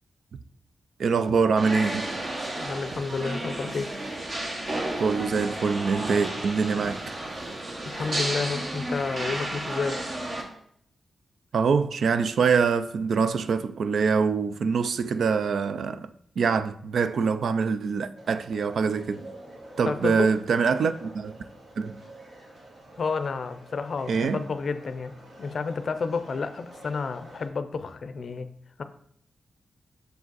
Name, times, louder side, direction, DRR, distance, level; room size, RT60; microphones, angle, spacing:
voice 1, 1.0-2.1 5.0-7.1 11.5-19.3 19.8-21.3 21.8-22.0 24.1-24.5, right 5 dB, 70° right, 0.4 m, -24 dB
sound 1, 1.6-10.4, right 1 dB, 40° right, 1.1 m, -32 dB
voice 2, 2.6-3.9 7.9-10.0 19.9-20.3 23.0-28.5 28.8-28.9, left 4 dB, 50° left, 0.5 m, -30 dB
sound 2, 18.1-27.5, right 1 dB, 90° right, 2.0 m, -48 dB
6.6 x 5.1 x 4.0 m
wide cardioid pair, 160°, 0 cm